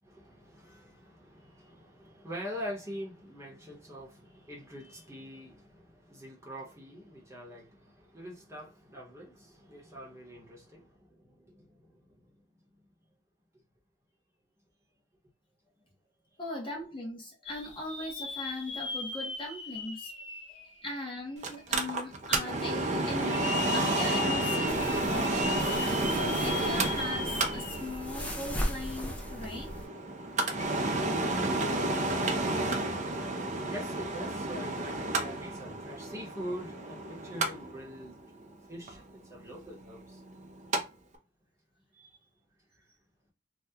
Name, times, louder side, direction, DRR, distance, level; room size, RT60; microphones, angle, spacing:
voice 1, 0.0-12.6 20.2-20.7 33.7-38.2 38.7-40.2 41.9-42.2 42.7-42.9, equal, 15° right, 1.0 m, -44 dB
voice 2, 16.4-20.1 20.8-29.8, left 1 dB, 30° left, 1.1 m, -39 dB
sound 1, 17.5-21.4 21.9-22.0 23.1-28.1 28.4-28.5 30.5-30.7, left 5 dB, 70° left, 0.8 m, -38 dB
Mechanical fan, 21.4-40.8 41.1-41.2, right 2 dB, 40° right, 0.6 m, -31 dB
sound 2, 24.7-29.9, equal, 5° left, 0.5 m, -38 dB
2.8 x 2.3 x 3.4 m
head